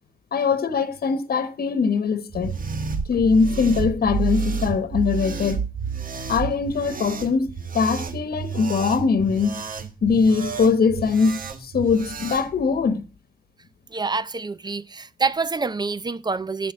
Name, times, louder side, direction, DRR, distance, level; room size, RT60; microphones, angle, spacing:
voice 1, 0.3-2.6 3.1-5.6 6.3-7.5 7.7-9.7 10.0-13.0, left 5 dB, 80° left, 1.2 m, -21 dB
sound 1, 2.3-12.5, right 5 dB, 60° right, 1.6 m, -30 dB
voice 2, 13.9-16.7, right 4 dB, 25° right, 0.6 m, -26 dB
13.0 x 6.9 x 6.2 m
wide cardioid pair, 170°, 16 cm